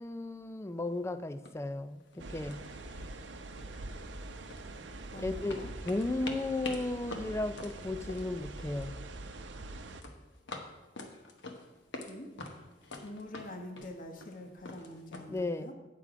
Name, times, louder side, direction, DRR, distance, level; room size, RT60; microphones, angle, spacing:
voice 1, 0.0-2.6 5.1-9.0 15.3-15.7, left 2 dB, 15° left, 12 dB, 0.4 m, -35 dB
sound 1, 0.9-1.0 1.4-1.7 2.0-2.2 2.5-3.3 3.6-5.1 5.5-9.0 9.3-9.7 10.0-12.1 12.4-15.2, left 2 dB, 80° left, 1.1 m, -46 dB
sound 2, 2.2-10.0, right 2 dB, 75° right, 0.7 m, -44 dB
voice 2, 5.1-5.7 12.1-12.3 13.0-15.7, left 1 dB, 50° left, 3 dB, 1.3 m, -45 dB
8.9 x 6.9 x 4.9 m, 1.1 s
head